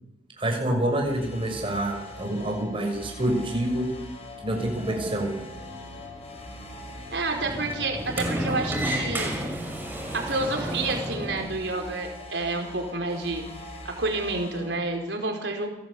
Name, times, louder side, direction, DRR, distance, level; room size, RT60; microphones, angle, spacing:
voice 1, 0.4-3.9 4.4-5.3, right 1 dB, 30° right, 2 dB, 6.4 m, -27 dB
sound 1, 1.0-14.7, left 1 dB, 35° left, 5.9 m, -42 dB
Sliding door, 4.4-11.5, equal, 10° right, 6.1 m, -33 dB
voice 2, 7.1-9.5 10.1-13.4 13.8-15.7, right 2 dB, 75° right, 3 dB, 4.7 m, -29 dB
29.5 x 17.0 x 8.5 m, 1.0 s
head